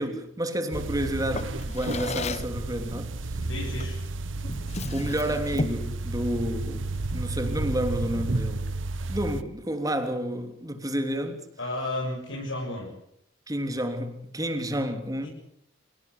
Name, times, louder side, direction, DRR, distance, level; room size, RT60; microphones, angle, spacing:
voice 1, 0.0-3.4 4.9-8.7 9.1-11.5 13.5-15.3, equal, 20° right, 3.2 m, -30 dB
sound 1, 0.7-9.4, right 2 dB, 70° right, 1.2 m, -32 dB
Drawer open or close, 1.3-2.6 3.8-4.0 4.4-5.9, left 3 dB, 35° left, 1.0 m, -34 dB
voice 2, 3.4-4.0 11.6-12.9 15.2-15.3, left 1 dB, 70° left, 7.6 m, -32 dB
28.5 x 18.5 x 8.3 m
head